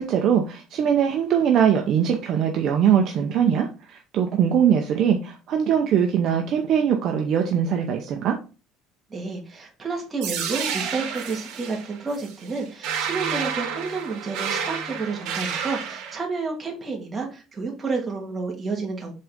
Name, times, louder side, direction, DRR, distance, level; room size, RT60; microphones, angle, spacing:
voice 1, 0.0-8.4, right 8 dB, 45° right, 3 dB, 0.7 m, -21 dB
voice 2, 9.1-19.1, right 4 dB, 15° right, 0 dB, 1.7 m, -30 dB
sound 1, 10.2-16.2, right 7 dB, 65° right, 1.7 m, -30 dB
7.6 x 3.8 x 3.6 m, 0.33 s
cardioid pair, 165°, 0 cm